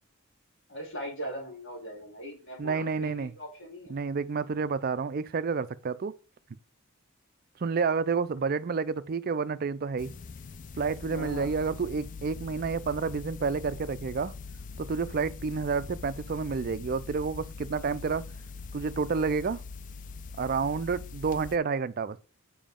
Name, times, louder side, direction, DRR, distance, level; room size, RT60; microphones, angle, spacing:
voice 1, 0.7-4.0 11.0-11.5, right 1 dB, 55° left, 3.1 m, -40 dB
voice 2, 2.6-3.3 3.9-6.1 7.6-10.1 10.8-14.3 14.8-18.2 18.7-19.6 20.4-22.2, right 5 dB, 45° right, 0.4 m, -29 dB
sound 1, 10.0-21.6, left 4 dB, 35° left, 0.4 m, -42 dB
7.1 x 5.0 x 3.7 m
head